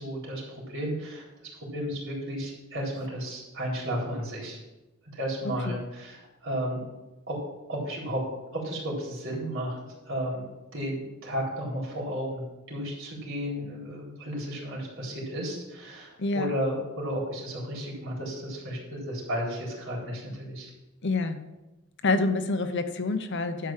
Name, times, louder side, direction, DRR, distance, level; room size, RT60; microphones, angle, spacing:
voice 1, 0.0-4.6 5.0-6.8 7.3-7.4 7.7-8.2 8.5-9.8 10.0-10.5 10.7-20.7, equal, 65° right, -3 dB, 4.2 m, -33 dB
voice 2, 16.2-16.5 21.0-21.4 22.0-23.7, left 3 dB, 60° left, 9 dB, 0.9 m, -27 dB
12.0 x 4.8 x 7.5 m, 1.0 s
head